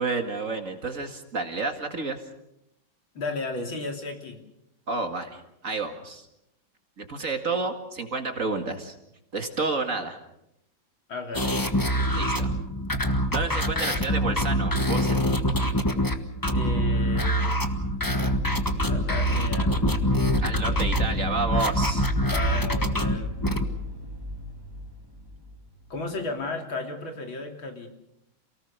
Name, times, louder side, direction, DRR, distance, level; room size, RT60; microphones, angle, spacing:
voice 1, 0.0-2.2 4.9-6.3 7.0-9.0 9.3-10.2 12.1-12.5 13.1-15.2 20.4-22.1, right 3 dB, 40° right, 5 dB, 2.3 m, -30 dB
voice 2, 3.2-4.4 11.1-11.6 16.5-17.6 18.9-19.7 22.2-23.3 25.9-27.9, left 3 dB, 80° left, 3 dB, 3.9 m, -34 dB
sound 1, 11.3-23.6, equal, 15° left, 1.1 m, -25 dB
sound 2, 17.4-26.2, equal, 10° right, 2.2 m, -33 dB
28.5 x 18.5 x 6.8 m, 0.85 s
omnidirectional pair, 2.1 m